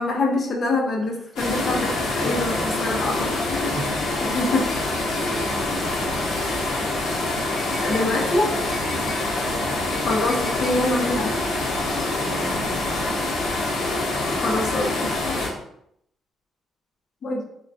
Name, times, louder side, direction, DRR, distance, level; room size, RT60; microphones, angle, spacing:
voice 1, 0.0-2.5 2.8-3.7 4.3-4.7 7.8-8.5 10.0-11.3 14.4-15.5 17.2-17.4, left 2 dB, 50° left, 0 dB, 0.7 m, -25 dB
voice 2, 1.0-1.4 2.1-2.8 3.5-4.1 5.0-6.4 8.9-9.1 11.7-13.2, right 1 dB, 10° right, 1 dB, 0.7 m, -36 dB
sound 1, 1.4-15.5, left 2 dB, 90° left, 0.8 m, -25 dB
sound 2, 4.7-5.6 6.1-6.7 7.4-8.1 8.7-9.3 9.9-10.8 11.6-12.2 12.9-14.2 15.2-15.3, left 1 dB, 30° left, 1.1 m, -42 dB
3.7 x 2.2 x 2.6 m, 0.73 s
cardioid pair, 90°, 0 cm